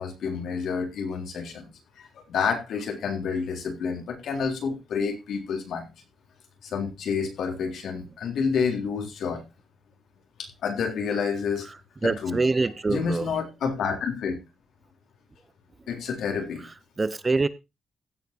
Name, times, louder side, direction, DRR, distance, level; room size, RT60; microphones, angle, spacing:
voice 1, 0.0-1.7 2.0-5.9 6.6-9.4 10.4-11.7 12.0-12.4 12.9-14.4 15.9-16.6, left 6 dB, 90° left, 3.7 m, -29 dB
voice 2, 12.0-13.3 17.0-17.5, right 3 dB, 20° right, 0.6 m, -24 dB
15.5 x 5.9 x 4.5 m
wide cardioid pair, 175°, 0 cm